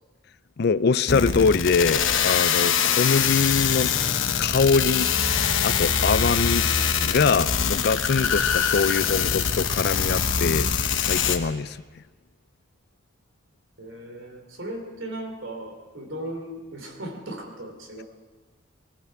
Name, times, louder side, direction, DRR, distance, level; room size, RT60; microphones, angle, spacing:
voice 1, 0.6-3.9 4.4-5.1 5.6-6.7 7.0-11.8, left 5 dB, 55° left, 16 dB, 0.4 m, -23 dB
sound 1, 1.1-11.4, left 7 dB, 80° left, 1.1 m, -23 dB
voice 2, 13.8-18.0, right 1 dB, 75° right, 3 dB, 2.9 m, -37 dB
20.5 x 14.5 x 4.7 m, 1.4 s
head